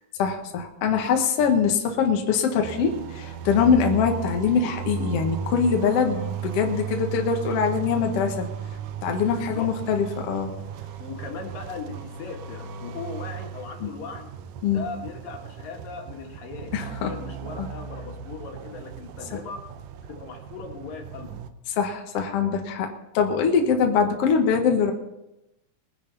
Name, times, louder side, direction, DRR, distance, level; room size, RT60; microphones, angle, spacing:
voice 1, 0.2-8.5 9.0-10.5 13.8-13.9 14.6-14.9 16.7-17.1 17.6-17.7 21.8-22.9 23.1-24.9, left 6 dB, 55° left, 3 dB, 2.1 m, -23 dB
sound 1, 2.6-21.5, right 8 dB, 80° right, 2.3 m, -36 dB
voice 2, 9.3-9.7 11.0-14.3 14.7-19.6 20.1-21.4, left 5 dB, 85° left, 1 dB, 3.5 m, -38 dB
22.0 x 9.9 x 4.1 m, 0.92 s
omnidirectional pair, 3.8 m